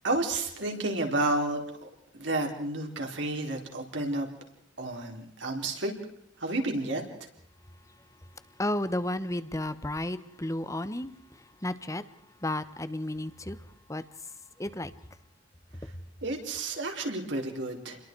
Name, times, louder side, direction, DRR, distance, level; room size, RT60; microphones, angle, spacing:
voice 1, 0.0-4.3 4.8-5.9 6.4-7.3 15.8-15.9 16.2-18.0, right 2 dB, 70° right, 4.3 m, -31 dB
voice 2, 8.6-11.1 11.6-12.0 12.4-13.6 13.9-14.0 14.6-14.9, left 1 dB, 15° left, 1.1 m, -32 dB
29.5 x 22.0 x 4.7 m
head